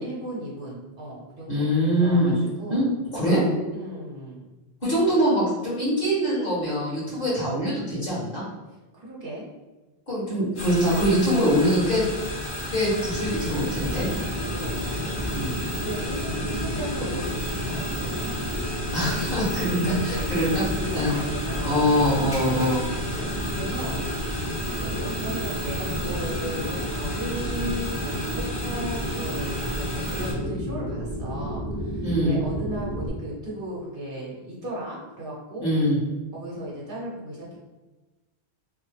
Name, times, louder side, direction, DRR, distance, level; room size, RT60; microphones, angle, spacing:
voice 1, 0.0-2.9 3.7-4.5 8.9-9.5 14.5-14.9 15.7-18.9 19.1-19.2 19.7-20.3 20.6-22.2 23.5-24.0 24.7-35.7 36.3-37.6, right 1 dB, 55° right, -4 dB, 0.9 m, -36 dB
voice 2, 1.5-2.4 2.7-2.9 3.1-3.4 4.8-8.4 10.1-12.0 12.7-14.1 15.3-15.6 18.9-20.7 20.9-21.1 21.6-22.8 32.0-32.4 35.6-36.0, equal, 55° left, -9 dB, 1.9 m, -23 dB
sound 1, 10.5-30.3, equal, 85° left, 1.3 m, -33 dB
sound 2, 13.1-33.1, equal, 20° left, 0.9 m, -31 dB
sound 3, 22.3-24.2 24.5-24.7 25.2-25.3 27.0-27.1, equal, 5° right, 0.5 m, -42 dB
3.5 x 2.1 x 3.1 m, 1.2 s
omnidirectional pair, 1.1 m